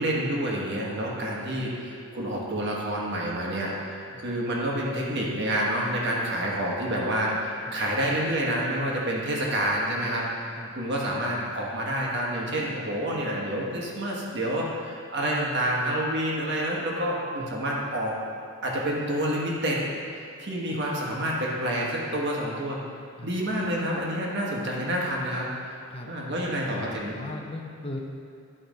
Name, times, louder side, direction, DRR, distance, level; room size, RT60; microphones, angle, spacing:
voice 1, 0.0-10.3 10.7-18.2 18.6-19.8 20.1-22.8 23.2-25.5 26.1-27.2, right 1 dB, 50° right, -3 dB, 1.3 m, -28 dB
voice 2, 26.5-28.0, left 1 dB, 25° left, 1 dB, 0.6 m, -38 dB
11.0 x 4.4 x 5.2 m, 2.4 s
head